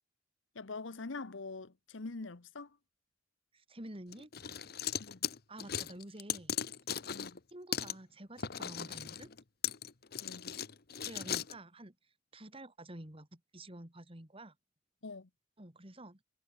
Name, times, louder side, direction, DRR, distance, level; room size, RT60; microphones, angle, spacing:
voice 1, 0.5-2.7 5.0-5.2 7.1-7.4 10.2-10.6 15.0-15.3, left 3 dB, 75° left, 1.0 m, -44 dB
voice 2, 3.5-4.3 5.5-6.6 7.5-9.3 11.0-11.9 12.3-14.5 15.6-16.2, right 1 dB, 30° right, 2.6 m, -49 dB
sound 1, 4.1-7.4 7.7-7.9 8.4-11.5, left 9 dB, 55° left, 1.2 m, -38 dB
head